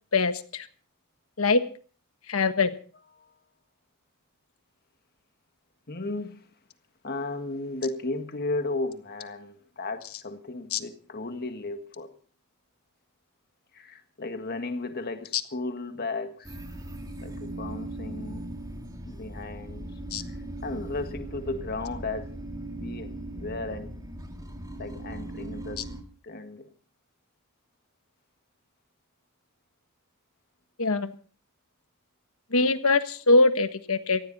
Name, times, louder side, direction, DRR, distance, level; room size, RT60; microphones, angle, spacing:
voice 1, 0.1-0.7 1.4-1.6 2.3-2.7 10.7-10.8 20.1-20.2 30.8-31.1 32.5-34.2, left 3 dB, 70° left, 1.4 m, -22 dB
voice 2, 5.9-6.5 7.0-12.1 13.7-16.5 17.2-18.5 19.1-19.9 20.2-22.4 22.7-23.9 24.8-25.8 26.2-26.7, left 2 dB, 45° left, 1.8 m, -35 dB
sound 1, 16.4-26.0, right 1 dB, 15° right, 2.1 m, -39 dB
18.0 x 15.0 x 4.1 m
head